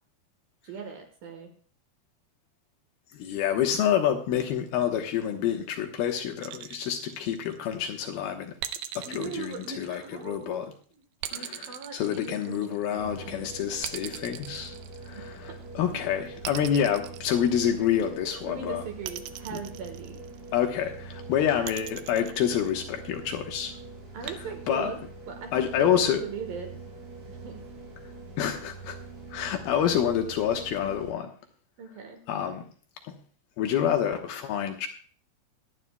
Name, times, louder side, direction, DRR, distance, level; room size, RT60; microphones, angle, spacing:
voice 1, 0.6-1.5 9.1-10.8 11.3-13.6 15.5-15.6 18.5-20.3 24.1-25.0 25.3-26.7 27.3-27.7 31.8-32.2, right 5 dB, 70° right, 4 dB, 3.0 m, -40 dB
voice 2, 3.1-8.6 9.0-10.7 11.3-14.8 15.0-18.8 19.5-19.6 20.5-23.8 24.2-24.9 25.5-26.2 28.4-29.0 29.3-31.3 32.3-32.7 33.0-33.1 33.6-34.9, left 9 dB, 80° left, 4 dB, 2.8 m, -28 dB
sound 1, 6.4-7.8 8.6-10.4 11.2-13.0 13.8-15.5 16.4-18.1 19.0-20.6 21.6-23.2 24.3-24.4, right 12 dB, 90° right, 2.7 m, -40 dB
sound 2, 13.0-31.1, right 3 dB, 45° right, 5.9 m, -44 dB
21.5 x 11.5 x 2.2 m, 0.43 s
omnidirectional pair, 4.4 m